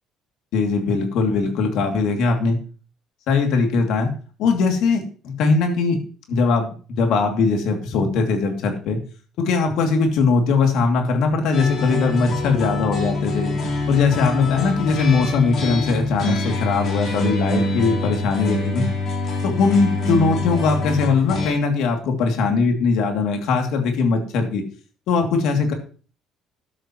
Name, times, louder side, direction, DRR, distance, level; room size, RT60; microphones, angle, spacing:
voice 1, 0.5-2.6 3.3-4.1 4.4-6.0 6.3-9.0 9.4-13.5 13.8-18.9 19.4-24.6 25.1-25.7, left 4 dB, 70° left, 3 dB, 2.7 m, -20 dB
sound 1, 11.5-21.5, left 2 dB, 40° left, 4.0 m, -25 dB
13.5 x 11.0 x 3.1 m, 0.39 s
cardioid pair, 175°, 0 cm